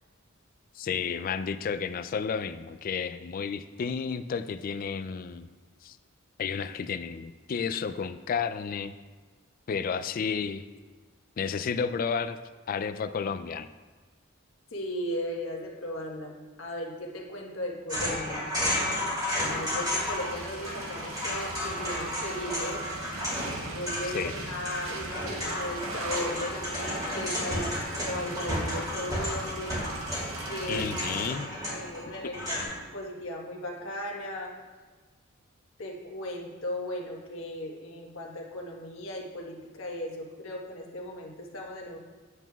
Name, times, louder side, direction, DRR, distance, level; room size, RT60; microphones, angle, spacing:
voice 1, 0.8-5.5 5.8-6.0 6.4-8.9 9.7-10.6 11.4-12.4 12.7-13.7 24.1-24.3 30.7-31.5, left 6 dB, 45° left, 11 dB, 0.3 m, -31 dB
voice 2, 14.7-16.3 16.6-18.5 19.4-22.8 23.7-29.8 30.5-30.8 31.7-34.5 35.8-42.0, left 1 dB, 75° left, -1 dB, 1.2 m, -37 dB
sound 1, 17.9-20.3 20.6-32.6, left 1 dB, 20° right, 2.4 m, -33 dB
sound 2, 19.4-31.3, right 2 dB, 85° right, 0.9 m, -40 dB
9.0 x 8.0 x 2.3 m, 1.4 s
head